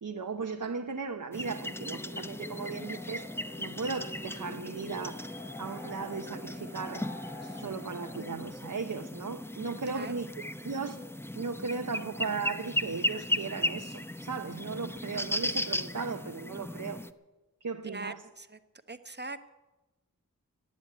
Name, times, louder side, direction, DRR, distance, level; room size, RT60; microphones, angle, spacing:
voice 1, 0.0-3.2 3.6-5.3 5.6-7.1 7.4-11.0 11.4-17.0 17.6-18.2, right 4 dB, 65° right, 0.9 m, -37 dB
sound 1, 1.3-17.1, left 1 dB, 5° left, 0.7 m, -37 dB
sound 2, 1.7-8.4, left 2 dB, 35° left, 3.5 m, -48 dB
voice 2, 17.8-18.6 18.9-19.5, right 3 dB, 30° right, 1.1 m, -41 dB
16.0 x 9.9 x 9.2 m
wide cardioid pair, 50°, 34 cm